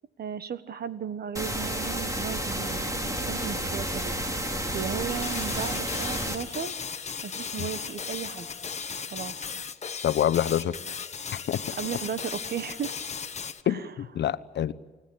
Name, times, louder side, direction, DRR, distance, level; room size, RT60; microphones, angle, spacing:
voice 1, 0.2-4.2 4.7-6.7 7.2-8.5 9.1-9.4 11.8-12.9 13.7-13.9, right 7 dB, 50° right, 13 dB, 1.5 m, -35 dB
sound 1, 1.4-6.4, right 1 dB, 15° right, 3.3 m, -31 dB
sound 2, 5.1-13.6, left 6 dB, 35° left, 1.3 m, -36 dB
voice 2, 10.0-10.8 11.5-11.8 13.7-14.7, left 10 dB, 60° left, 15 dB, 1.0 m, -26 dB
29.5 x 16.5 x 8.9 m, 1.3 s
cardioid pair, 90°, 20 cm